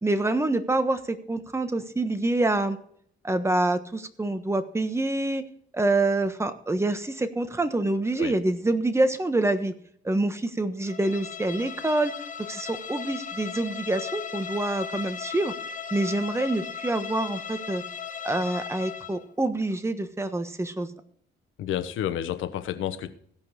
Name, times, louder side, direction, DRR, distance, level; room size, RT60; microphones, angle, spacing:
voice 1, 0.0-2.8 3.2-5.5 5.7-9.7 10.0-12.1 12.4-15.5 15.9-17.8 18.2-20.9, right 2 dB, 15° right, 9 dB, 1.3 m, -26 dB
Bowed string instrument, 10.9-19.2, left 7 dB, 40° left, 1.2 m, -37 dB
voice 2, 21.6-23.1, left 11 dB, 80° left, 10 dB, 1.1 m, -30 dB
16.0 x 5.6 x 6.6 m, 0.63 s
cardioid pair, 90°, 20 cm